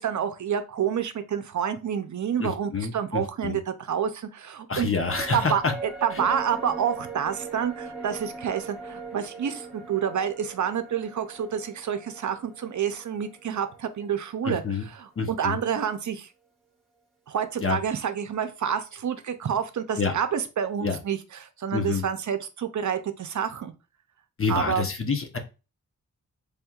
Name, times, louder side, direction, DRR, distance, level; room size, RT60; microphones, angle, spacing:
voice 1, 0.0-3.6 3.9-4.9 5.3-5.6 6.0-14.6 15.0-16.3 17.3-23.7 24.5-24.9, right 8 dB, 60° right, 9 dB, 0.6 m, -28 dB
voice 2, 2.4-3.6 4.7-5.7 6.1-6.2 14.4-14.9 15.2-15.6 17.6-17.8 20.0-20.1 20.8-21.0 21.7-22.0 24.4-25.4, left 5 dB, 40° left, 6 dB, 0.9 m, -27 dB
sound 1, 5.0-14.5 14.8-14.9, right 4 dB, ahead, 1.2 m, -40 dB
4.3 x 3.5 x 2.3 m, 0.30 s
cardioid pair, 70°, 34 cm